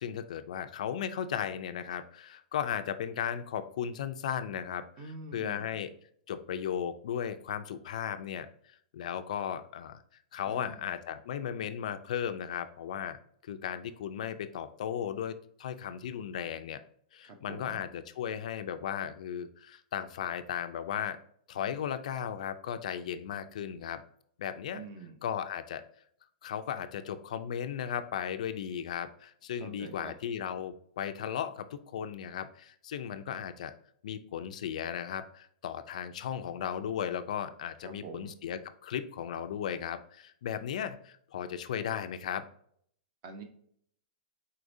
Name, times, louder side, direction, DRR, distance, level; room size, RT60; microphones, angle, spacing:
voice 1, 0.0-5.9 6.3-8.5 8.9-10.0 10.3-13.2 13.5-16.8 17.1-21.2 21.5-24.0 24.4-24.8 25.2-25.8 26.4-33.7 34.0-42.4, left 9 dB, 60° left, 10 dB, 0.4 m, -36 dB
voice 2, 5.0-5.8 10.5-10.9 17.2-17.8 24.7-25.2 29.6-30.1 37.8-38.3 43.2-43.4, right 3 dB, 30° right, 6 dB, 0.7 m, -46 dB
4.8 x 4.2 x 2.6 m, 0.63 s
supercardioid pair, 175°, 4 cm